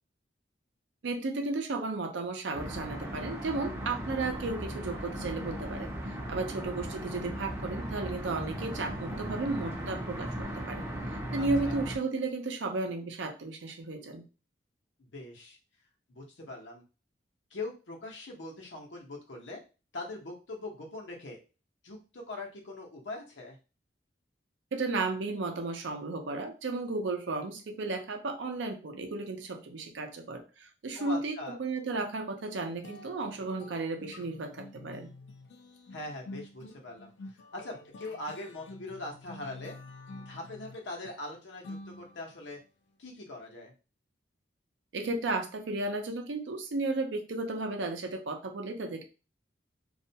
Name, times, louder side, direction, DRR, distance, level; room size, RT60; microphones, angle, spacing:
voice 1, 1.0-14.2 24.7-35.1 44.9-49.0, right 3 dB, 85° right, 5 dB, 0.5 m, -34 dB
sound 1, 2.5-12.0, right 1 dB, 15° right, 0.4 m, -37 dB
voice 2, 11.4-11.8 15.0-15.6 16.1-16.8 17.5-19.6 19.9-21.4 21.8-23.6 30.9-31.6 35.9-37.1 37.5-39.8 40.1-42.6 43.0-43.7, left 2 dB, 85° left, 0 dB, 0.8 m, -42 dB
sound 2, 32.8-42.5, left 2 dB, 70° left, 0.3 m, -48 dB
2.4 x 2.1 x 2.7 m, 0.32 s
head